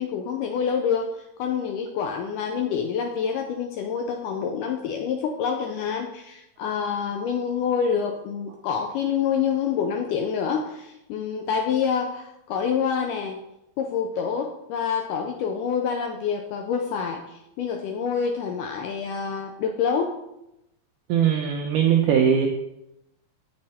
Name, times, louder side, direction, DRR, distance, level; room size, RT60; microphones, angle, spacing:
voice 1, 0.0-13.4 13.8-20.2, left 7 dB, 85° left, 3 dB, 1.8 m, -27 dB
voice 2, 21.1-22.5, right 8 dB, 85° right, 1 dB, 1.8 m, -20 dB
7.6 x 6.6 x 4.3 m, 0.86 s
omnidirectional pair, 4.4 m